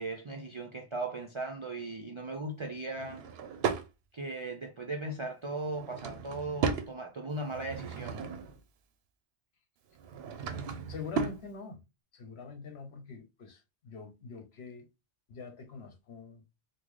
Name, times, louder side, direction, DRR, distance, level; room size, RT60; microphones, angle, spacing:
voice 1, 0.0-3.2 4.1-8.2, right 2 dB, 50° right, 0.3 m, -38 dB
Drawer open or close / Wood, 2.9-3.9 5.6-6.9 7.4-8.6 9.9-11.4, right 5 dB, 70° right, 0.8 m, -35 dB
voice 2, 10.4-11.8 12.1-14.9 15.3-16.4, left 5 dB, 70° left, 1.0 m, -45 dB
3.8 x 2.2 x 3.1 m
omnidirectional pair, 1.2 m